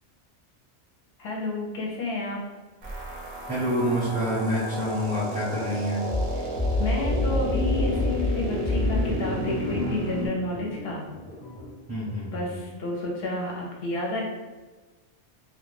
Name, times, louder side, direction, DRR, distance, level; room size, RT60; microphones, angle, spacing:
voice 1, 1.2-2.4 6.4-6.5 6.8-11.0 12.3-14.2, left 2 dB, 65° left, -2 dB, 0.7 m, -30 dB
sound 1, 2.8-10.3, right 1 dB, 50° right, 0.6 m, -33 dB
voice 2, 3.5-6.0 11.9-12.6, equal, 10° right, -11 dB, 0.5 m, -27 dB
sound 2, 6.1-11.7, left 2 dB, 15° left, 0.8 m, -28 dB
2.3 x 2.1 x 3.1 m, 1.3 s
omnidirectional pair, 1.2 m